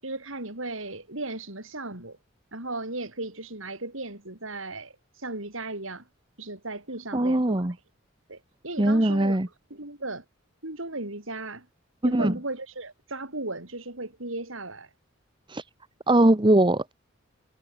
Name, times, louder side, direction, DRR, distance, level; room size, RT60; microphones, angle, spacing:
voice 1, 0.0-2.2 2.5-6.1 6.4-7.6 8.3-9.4 9.7-10.2 10.6-11.7 12.0-14.9, right 2 dB, 70° right, 6.9 m, -36 dB
voice 2, 7.1-7.7 8.8-9.5 12.0-12.3 15.5-15.6 16.1-16.9, right 1 dB, 25° right, 1.1 m, -21 dB
head